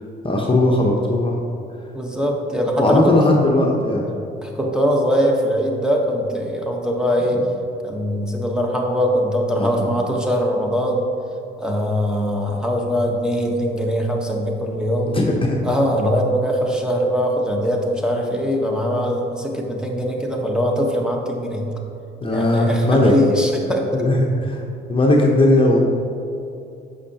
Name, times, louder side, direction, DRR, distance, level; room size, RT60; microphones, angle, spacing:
voice 1, 0.2-1.4 2.8-4.1 7.3-7.4 9.6-9.9 15.1-15.6 22.2-23.1 23.9-24.6 24.9-25.8, left 1 dB, 25° left, -1 dB, 0.9 m, -18 dB
voice 2, 1.9-3.1 4.4-7.4 7.8-11.0 11.6-15.2 15.6-21.7 22.3-24.0, equal, 5° right, 0 dB, 1.1 m, -21 dB
8.2 x 5.7 x 2.9 m, 2.7 s
supercardioid pair, 70°, 21 cm